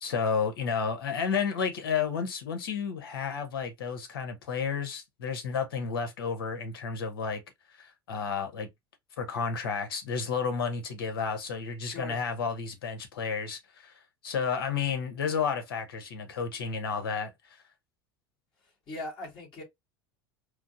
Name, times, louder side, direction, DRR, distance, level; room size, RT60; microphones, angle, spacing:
voice 1, 0.0-7.4 7.8-8.7 9.2-13.9 14.2-17.3, left 6 dB, 70° left, 0.9 m, -31 dB
voice 2, 11.8-12.2 18.9-19.6, left 1 dB, 45° left, 2.2 m, -39 dB
4.8 x 2.0 x 2.5 m
figure-of-eight pair, 75°, 12 cm